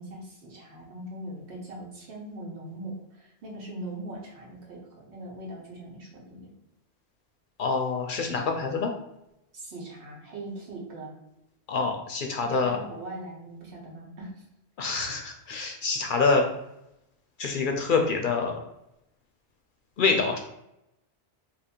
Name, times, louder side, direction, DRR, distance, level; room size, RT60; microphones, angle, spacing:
voice 1, 0.0-6.5 9.5-11.1 12.5-14.5, right 1 dB, 80° right, -3 dB, 1.3 m, -41 dB
voice 2, 7.6-8.9 11.7-12.8 14.8-16.4 17.4-18.5 20.0-20.4, left 4 dB, 60° left, 3 dB, 0.6 m, -26 dB
2.8 x 2.5 x 4.3 m, 0.85 s
omnidirectional pair, 1.1 m